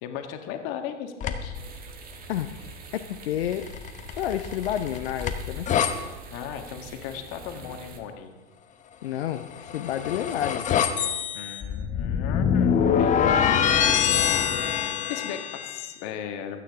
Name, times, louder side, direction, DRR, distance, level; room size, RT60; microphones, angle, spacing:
voice 1, 0.0-1.6 6.3-8.3 11.3-16.6, left 8 dB, 40° left, 5 dB, 1.7 m, -36 dB
sound 1, 1.2-1.6 3.5-5.9 9.4-15.8, left 8 dB, 20° left, 0.9 m, -25 dB
sound 2, 1.5-8.0, right 3 dB, 25° right, 1.6 m, -44 dB
voice 2, 2.3-3.7 4.2-5.7 9.0-10.7 12.9-13.4, left 11 dB, 60° left, 8 dB, 0.8 m, -30 dB
24.5 x 9.3 x 3.6 m, 1.2 s
figure-of-eight pair, 95°, 35 cm